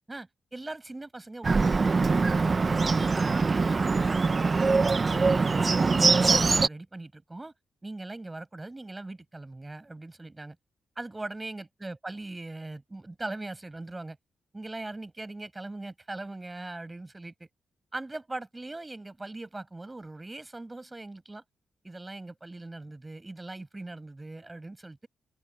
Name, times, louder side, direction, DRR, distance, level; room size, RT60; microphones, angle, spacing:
voice 1, 0.1-2.8 3.1-5.0 5.3-7.5 7.8-10.6 11.0-14.2 14.5-17.5 17.9-21.4 21.8-25.1, right 2 dB, 15° right, 7.5 m, -40 dB
Bird, 1.4-6.7, right 4 dB, 35° right, 0.5 m, -23 dB
open air
wide cardioid pair, 135°, 0 cm